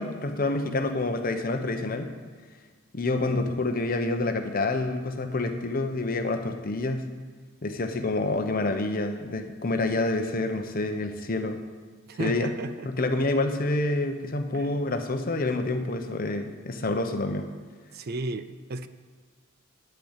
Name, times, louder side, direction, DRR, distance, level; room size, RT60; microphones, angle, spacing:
voice 1, 0.0-2.1 2.9-7.1 7.6-11.6 12.2-12.5 12.8-17.5, left 2 dB, 45° left, 6 dB, 0.9 m, -28 dB
voice 2, 12.1-12.9 14.5-14.7 17.9-18.9, right 2 dB, 50° right, 12 dB, 0.5 m, -33 dB
10.0 x 6.9 x 8.1 m, 1.5 s
head